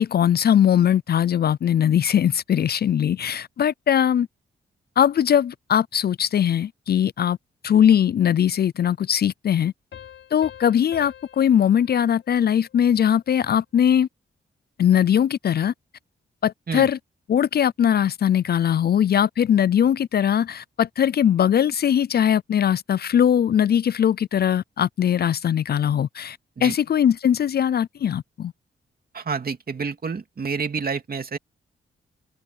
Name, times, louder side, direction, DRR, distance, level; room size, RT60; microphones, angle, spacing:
voice 1, 0.0-4.3 5.0-7.4 7.6-9.7 10.3-14.1 14.8-15.7 16.4-17.0 17.3-28.5, left 9 dB, 50° left, 0.4 m, -20 dB
sound 1, 9.9-13.2, left 9 dB, 70° left, 5.0 m, -46 dB
voice 2, 29.1-31.4, right 5 dB, 50° right, 2.7 m, -28 dB
open air
cardioid pair, 75°, 20 cm